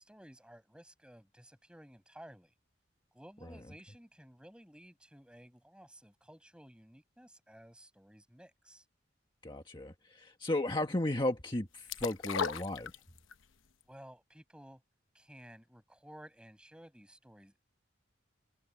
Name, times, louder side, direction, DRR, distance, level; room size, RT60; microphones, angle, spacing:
voice 1, 0.0-2.5 3.1-8.8 13.9-14.8 15.1-17.6, equal, 5° right, 7.8 m, -55 dB
voice 2, 9.4-12.9, left 1 dB, 25° left, 1.6 m, -34 dB
sound 1, 11.9-13.4 13.8-13.9, left 6 dB, 75° left, 0.9 m, -36 dB
head